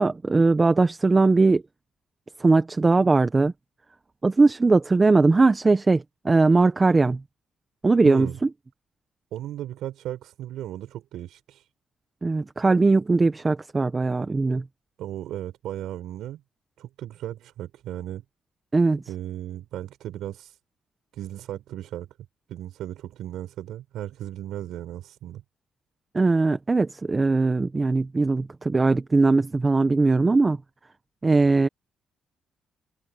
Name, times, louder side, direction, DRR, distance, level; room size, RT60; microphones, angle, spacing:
voice 1, 0.0-1.6 2.4-3.5 4.2-7.2 7.8-8.3 12.2-14.6 18.7-19.0 26.1-30.6 31.2-31.7, right 3 dB, 25° right, 1.3 m, -20 dB
voice 2, 8.0-8.4 9.3-11.7 15.0-16.4 16.8-18.2 19.1-20.6 21.1-22.1 22.5-25.4, right 12 dB, 80° right, 4.9 m, -36 dB
cardioid pair, 90°, 0 cm